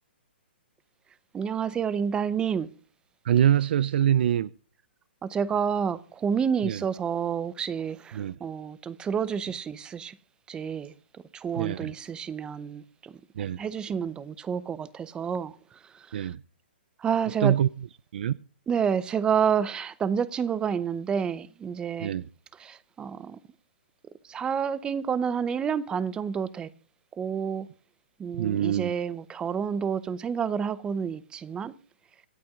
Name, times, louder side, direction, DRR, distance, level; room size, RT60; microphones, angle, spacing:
voice 1, 1.3-2.7 5.2-10.1 10.5-10.9 11.3-13.1 13.6-15.6 15.9-16.3 17.0-17.6 18.7-22.1 22.6-23.4 24.3-26.7 27.2-27.7 28.2-31.7, right 7 dB, 15° right, 0.6 m, -29 dB
voice 2, 3.2-4.5 6.6-6.8 8.1-8.4 11.6-11.9 13.4-13.6 16.1-16.4 17.4-17.7 18.1-18.4 22.0-22.3 28.4-28.9, right 10 dB, 60° right, 0.4 m, -24 dB
25.5 x 8.6 x 2.4 m
hypercardioid pair, 140°, 6 cm